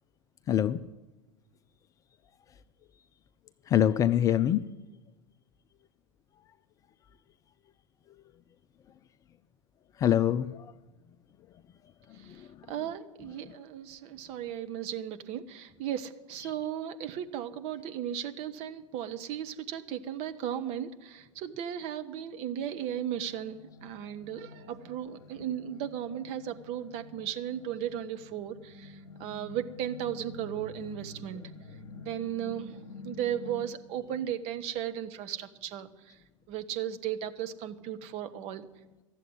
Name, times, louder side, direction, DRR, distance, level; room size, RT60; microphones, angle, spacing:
voice 1, 0.5-0.8 3.7-4.7 10.0-10.7 12.3-12.5 13.5-13.6, left 10 dB, 20° left, 12 dB, 0.3 m, -25 dB
voice 2, 12.7-31.5 32.0-36.1 36.5-38.7, right 10 dB, 35° right, 9 dB, 1.0 m, -36 dB
sound 1, 22.6-33.7, left 3 dB, 60° left, 1.1 m, -49 dB
14.0 x 7.6 x 9.5 m, 1.1 s
figure-of-eight pair, 95°, 17 cm